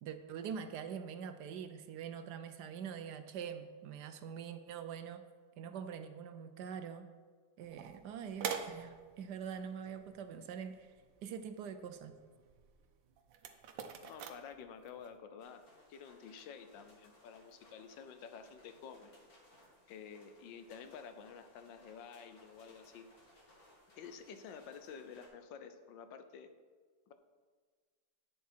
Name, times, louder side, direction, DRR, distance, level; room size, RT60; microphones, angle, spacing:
voice 1, 0.0-5.2 5.6-7.1 7.6-10.9 11.2-12.1, right 7 dB, 70° right, 9 dB, 1.2 m, -44 dB
sound 1, 7.6-15.1, right 7 dB, 85° right, 1.5 m, -47 dB
voice 2, 14.0-19.1 19.9-23.0 24.0-26.5 27.1-27.2, left 6 dB, 80° left, 9 dB, 1.5 m, -51 dB
sound 2, 15.4-25.3, left 1 dB, 50° left, 2.6 m, -64 dB
10.5 x 8.5 x 4.5 m, 1.5 s
omnidirectional pair, 2.0 m